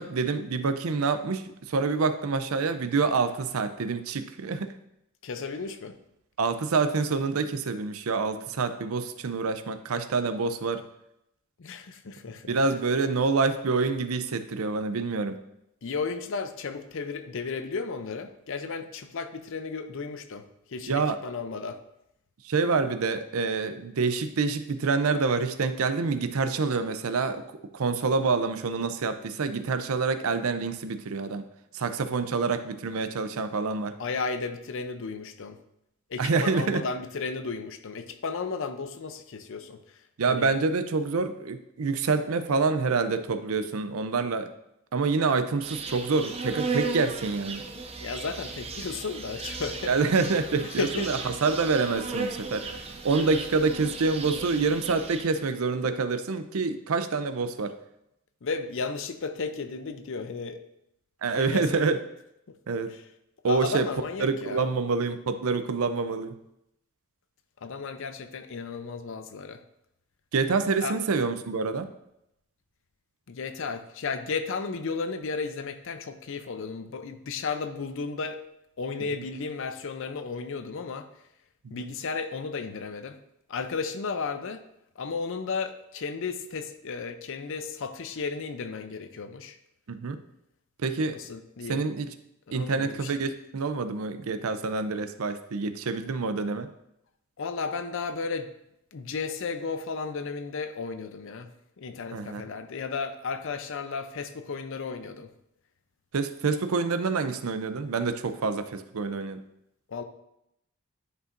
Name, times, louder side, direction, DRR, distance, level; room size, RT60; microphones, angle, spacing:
voice 1, 0.0-4.7 6.4-10.8 12.5-15.4 20.9-21.2 22.4-27.4 27.7-31.5 31.7-34.0 36.2-36.8 40.2-44.5 44.9-47.6 49.9-52.7 53.0-57.8 61.2-62.0 62.7-62.9 63.4-63.9 64.2-66.4 70.3-71.8 79.1-79.2 81.6-81.9 89.9-90.2 90.8-91.2 91.7-92.1 92.5-96.7 102.1-102.4 106.1-109.4, right 4 dB, 75° right, 11 dB, 0.5 m, -27 dB
voice 2, 5.2-6.0 11.6-12.6 15.8-21.8 34.0-35.6 36.1-40.0 40.2-40.5 48.0-49.9 50.8-51.1 58.4-60.6 61.4-61.9 62.9-63.0 63.4-64.7 67.6-69.6 70.8-71.0 73.3-78.4 78.8-81.1 81.7-83.2 83.5-84.6 85.0-89.6 91.1-91.8 92.5-93.2 97.4-98.5 98.9-101.5 101.8-105.3 109.9-110.0, left 4 dB, 60° left, 9 dB, 0.6 m, -34 dB
Insect, 45.6-55.4, right 3 dB, 30° right, 0.6 m, -36 dB
9.9 x 5.4 x 2.6 m, 0.82 s
head